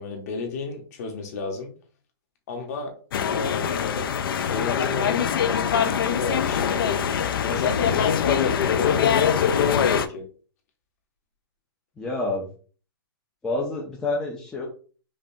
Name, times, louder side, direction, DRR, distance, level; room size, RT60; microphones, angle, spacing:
voice 1, 0.0-1.7 2.5-2.9 3.2-4.0 4.5-5.3 5.9-10.3, left 3 dB, 40° left, 3 dB, 1.0 m, -32 dB
sound 1, 3.1-10.1, left 8 dB, 65° left, 0.4 m, -23 dB
voice 2, 12.0-12.5 13.4-14.6, left 2 dB, 5° left, -3 dB, 0.4 m, -28 dB
5.1 x 2.3 x 2.7 m, 0.39 s
hypercardioid pair, 165°, 13 cm